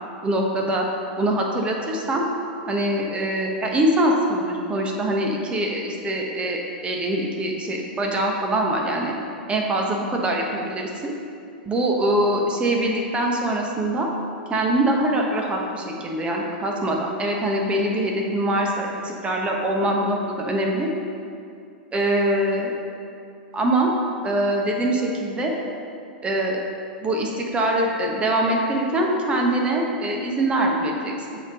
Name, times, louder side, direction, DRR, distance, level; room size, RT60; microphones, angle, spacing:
voice 1, 0.2-0.9 1.2-2.2 2.7-9.1 9.5-11.1 11.6-14.1 14.5-20.9 21.9-22.7 23.5-23.9 24.2-25.5 26.2-26.6 27.0-31.4, right 1 dB, 20° right, 0 dB, 1.1 m, -23 dB
6.8 x 3.8 x 5.2 m, 2.5 s
hypercardioid pair, 100°, 5 cm